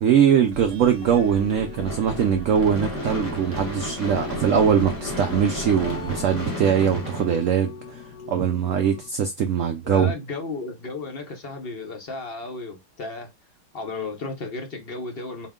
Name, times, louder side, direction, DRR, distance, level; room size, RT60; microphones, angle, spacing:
voice 1, 0.0-8.0 8.3-10.1, right 8 dB, 80° right, 0.7 m, -21 dB
sound 1, 0.5-7.1, right 6 dB, 50° right, 1.0 m, -40 dB
sound 2, 0.8-9.1, left 6 dB, 80° left, 1.2 m, -41 dB
Gunshot gunfire / Fireworks, 1.9-8.1, left 1 dB, 15° left, 0.8 m, -33 dB
voice 2, 9.8-13.3 13.7-15.5, left 3 dB, 50° left, 0.7 m, -34 dB
4.4 x 2.1 x 3.6 m
omnidirectional pair, 1.9 m